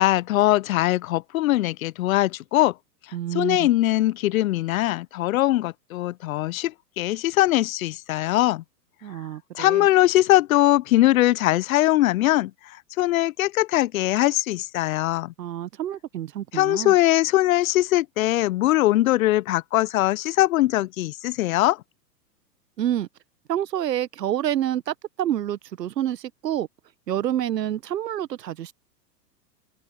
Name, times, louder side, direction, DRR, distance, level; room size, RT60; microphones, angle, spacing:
voice 1, 0.0-2.7 3.3-8.6 9.5-15.3 16.5-21.8, left 16 dB, 55° left, 0.9 m, -21 dB
voice 2, 3.1-3.7 9.0-9.9 15.4-16.9 22.8-23.1 23.5-26.7 27.1-28.7, right 11 dB, 75° right, 1.1 m, -28 dB
open air
hypercardioid pair, 110°, 49 cm